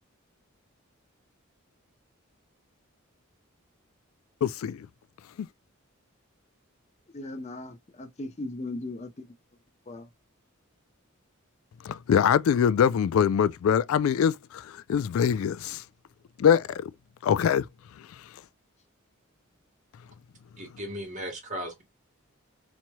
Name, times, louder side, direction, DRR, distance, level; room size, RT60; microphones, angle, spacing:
voice 1, 4.4-4.9 11.8-15.8 16.4-16.9 17.2-17.6, left 8 dB, 75° left, 0.3 m, -23 dB
voice 2, 7.1-9.3 9.9-10.1, left 2 dB, 30° left, 0.6 m, -37 dB
voice 3, 20.6-21.8, equal, 35° right, 1.3 m, -36 dB
4.1 x 3.0 x 2.2 m
head